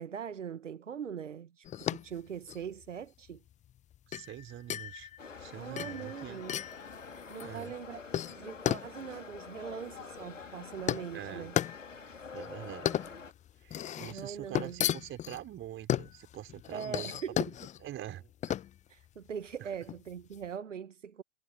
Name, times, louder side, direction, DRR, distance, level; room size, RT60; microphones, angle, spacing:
voice 1, 0.0-3.4 5.6-6.6 7.3-8.0 8.3-11.6 14.1-14.8 16.7-17.5 18.9-21.2, right 7 dB, 75° right, 1.3 m, -41 dB
sound 1, 1.6-20.4, left 11 dB, 20° left, 0.7 m, -36 dB
voice 2, 4.1-5.1 5.4-6.4 7.4-7.7 11.1-11.5 12.3-13.0 13.6-17.2 17.8-18.6 19.6-19.7, right 12 dB, 30° right, 4.5 m, -44 dB
sound 2, 5.2-13.3, left 5 dB, 85° left, 2.1 m, -47 dB
figure-of-eight pair, 90°, 37 cm